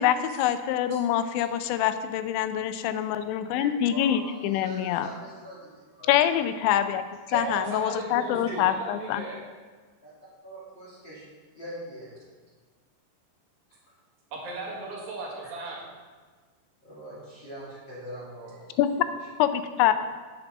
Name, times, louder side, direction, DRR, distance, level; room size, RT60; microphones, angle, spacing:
voice 1, 0.0-5.1 6.1-7.0 7.3-9.2 18.8-19.1 19.4-19.9, left 11 dB, 85° left, 10 dB, 2.8 m, -25 dB
voice 2, 0.9-1.3 7.4-9.5 14.3-15.9, right 2 dB, 60° right, -3 dB, 3.1 m, -37 dB
voice 3, 3.5-6.1 7.3-7.4 10.0-10.1 10.4-11.2 11.5-12.2 16.8-18.8, equal, 30° left, -9 dB, 2.6 m, -41 dB
8.0 x 7.0 x 5.9 m, 1.4 s
omnidirectional pair, 5.3 m